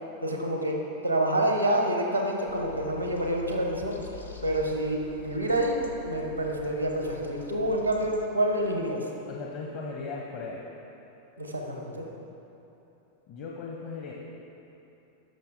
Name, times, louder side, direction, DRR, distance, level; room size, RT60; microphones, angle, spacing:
voice 1, 0.2-0.8 1.0-4.0 4.4-5.8 6.0-9.1 11.4-12.0, right 1 dB, 90° right, 1 dB, 1.1 m, -27 dB
sound 1, 2.5-8.3, left 3 dB, 85° left, 0.7 m, -44 dB
voice 2, 9.3-10.6 13.3-14.1, left 4 dB, 45° left, -2 dB, 0.9 m, -37 dB
12.0 x 5.9 x 3.8 m, 2.9 s
figure-of-eight pair, 90°, 0 cm